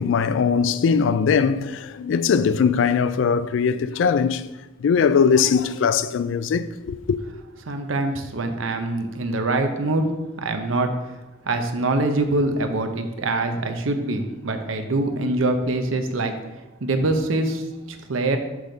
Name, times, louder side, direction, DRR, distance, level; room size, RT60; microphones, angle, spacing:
voice 1, 0.0-4.5 4.8-7.2, left 6 dB, 75° left, 0.3 m, -20 dB
voice 2, 7.7-10.0 10.4-11.1 11.5-16.4 16.8-18.4, right 2 dB, 85° right, 0.7 m, -24 dB
6.1 x 5.0 x 3.9 m
head